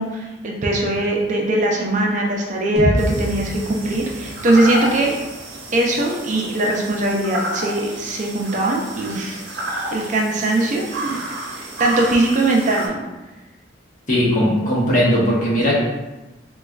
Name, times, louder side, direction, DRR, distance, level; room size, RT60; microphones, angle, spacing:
voice 1, 0.0-5.2 5.7-9.4 9.9-11.1 11.5-13.0, right 2 dB, 40° right, -1 dB, 0.4 m, -20 dB
sound 1, 2.8-6.7, equal, 5° right, 0.7 m, -28 dB
sound 2, 3.0-12.9, right 1 dB, 75° right, 0.7 m, -31 dB
voice 2, 14.1-15.7, equal, 45° left, -6 dB, 0.9 m, -18 dB
4.1 x 2.3 x 2.3 m, 1.1 s
head